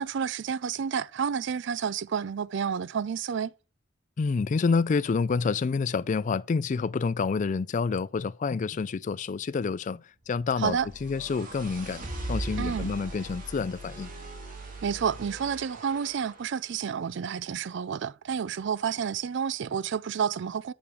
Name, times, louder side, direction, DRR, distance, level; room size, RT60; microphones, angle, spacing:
voice 1, 0.0-3.5 10.6-10.9 12.6-12.9 14.8-20.7, right 7 dB, 65° right, 0.4 m, -30 dB
voice 2, 4.2-12.0 12.3-14.1, left 5 dB, 40° left, 0.3 m, -28 dB
sound 1, 10.4-16.5, right 2 dB, 45° right, 2.4 m, -39 dB
8.6 x 7.0 x 3.4 m
head